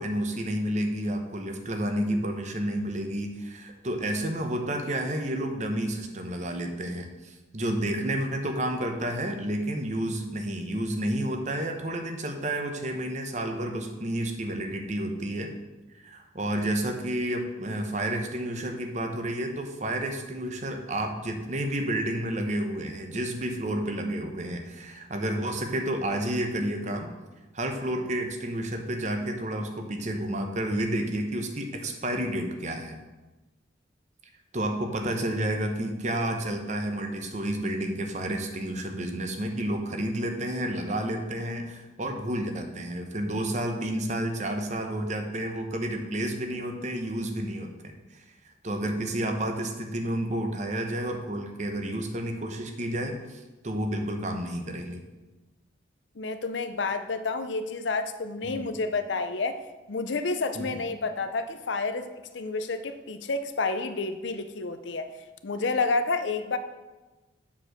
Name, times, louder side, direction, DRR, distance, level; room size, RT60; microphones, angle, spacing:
voice 1, 0.0-15.5 16.0-27.1 27.5-33.0 34.5-55.0 58.4-58.7 60.6-60.8, right 1 dB, 40° right, 4 dB, 0.9 m, -30 dB
voice 2, 56.2-59.6 59.9-65.1 65.4-66.6, left 3 dB, 75° left, 9 dB, 0.6 m, -29 dB
7.2 x 4.6 x 6.5 m, 1.1 s
head